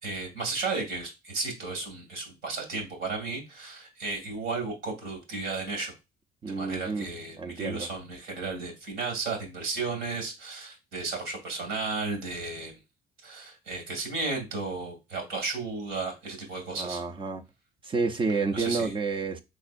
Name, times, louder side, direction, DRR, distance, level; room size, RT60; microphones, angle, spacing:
voice 1, 0.0-5.9 6.5-12.8 13.2-17.0 18.5-18.9, right 3 dB, 90° right, 2.1 m, -34 dB
voice 2, 6.4-7.1 7.4-7.9 16.7-17.4 17.8-19.4, right 4 dB, 30° right, 0.5 m, -29 dB
4.6 x 4.0 x 2.5 m
cardioid pair, 110°, 17 cm